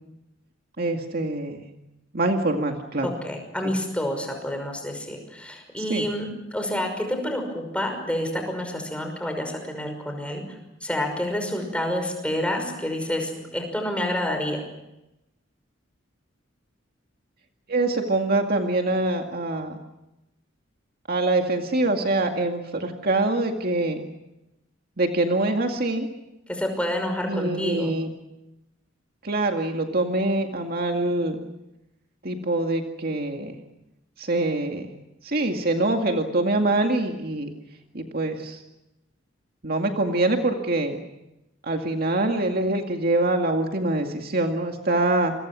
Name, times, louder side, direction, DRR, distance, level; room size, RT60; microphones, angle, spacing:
voice 1, 0.8-1.6 2.1-3.1 5.9-6.0 17.7-19.8 21.1-24.0 25.0-26.1 27.3-28.1 29.2-31.4 32.2-33.6 34.2-34.9 35.2-37.5 37.9-38.6 39.6-41.0 41.6-45.3, right 2 dB, 50° right, 4 dB, 2.1 m, -24 dB
voice 2, 3.0-10.4 10.8-14.6 26.5-27.9, left 1 dB, 5° left, 4 dB, 5.7 m, -28 dB
28.0 x 23.0 x 6.3 m, 0.93 s
head